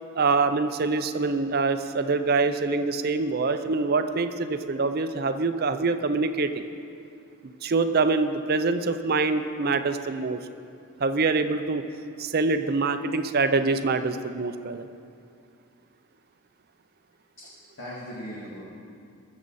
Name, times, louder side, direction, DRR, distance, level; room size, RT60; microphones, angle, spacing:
voice 1, 0.1-6.6 7.6-10.4 11.0-11.8 12.2-14.9, right 3 dB, 45° right, 9 dB, 0.5 m, -25 dB
voice 2, 17.4-18.6, equal, 55° left, -8 dB, 2.1 m, -39 dB
21.0 x 7.4 x 4.1 m, 2.5 s
head